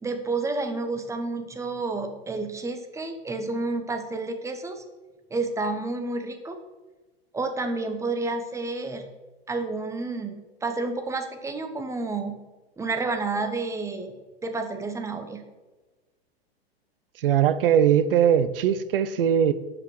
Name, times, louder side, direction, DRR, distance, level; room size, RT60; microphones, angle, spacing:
voice 1, 0.0-4.8 5.3-6.6 7.3-9.0 9.5-12.3 12.8-14.1 14.4-15.4, right 3 dB, 10° right, 1.0 m, -30 dB
voice 2, 17.2-19.5, right 9 dB, 60° right, 0.7 m, -20 dB
7.9 x 5.6 x 6.3 m
figure-of-eight pair, 100°, 31 cm